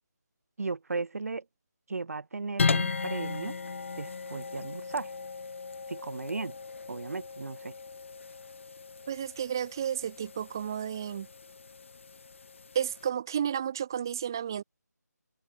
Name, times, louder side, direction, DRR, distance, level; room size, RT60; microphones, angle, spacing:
voice 1, 0.6-1.4 1.9-3.6 3.9-5.1 5.9-6.5 6.9-7.7, right 4 dB, 55° right, 1.5 m, -36 dB
sound 1, 2.6-13.1, left 4 dB, 45° left, 1.0 m, -36 dB
voice 2, 9.1-11.3 12.7-14.6, right 9 dB, 15° right, 0.4 m, -32 dB
figure-of-eight pair, 165°, 9 cm